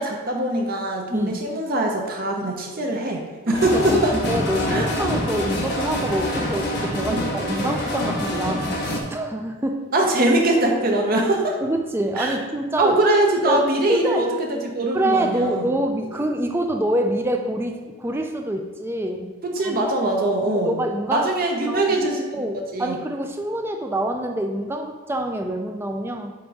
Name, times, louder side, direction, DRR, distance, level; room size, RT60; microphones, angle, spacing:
voice 1, 0.0-4.1 4.7-4.9 6.9-7.3 9.9-11.6 12.2-12.4 12.8-15.7 19.4-20.8 21.1-22.3 22.7-23.0, right 1 dB, 40° right, 1 dB, 0.7 m, -22 dB
sound 1, 3.5-9.0, left 1 dB, 50° left, 1.0 m, -26 dB
voice 2, 3.5-9.8 11.6-13.0 13.5-14.2 14.9-19.3 19.6-19.8 20.5-21.3 21.7-22.0 22.3-26.3, right 1 dB, 10° right, 4 dB, 0.4 m, -26 dB
7.9 x 2.6 x 4.6 m, 1.3 s
head